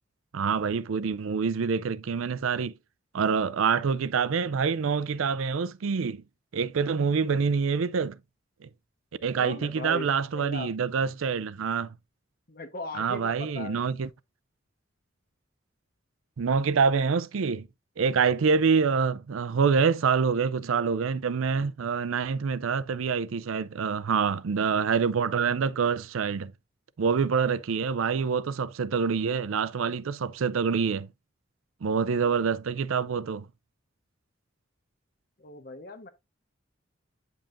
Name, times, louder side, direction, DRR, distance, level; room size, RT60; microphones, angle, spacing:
voice 1, 0.3-2.7 3.1-6.2 6.5-8.2 9.2-11.9 12.9-14.1 16.4-17.7 18.0-26.5 27.0-31.1 31.8-33.5, right 5 dB, 85° right, 0.5 m, -26 dB
voice 2, 7.0-7.4 9.3-10.7 12.5-13.8 35.4-36.1, left 2 dB, 50° left, 1.1 m, -39 dB
8.7 x 5.5 x 2.6 m
head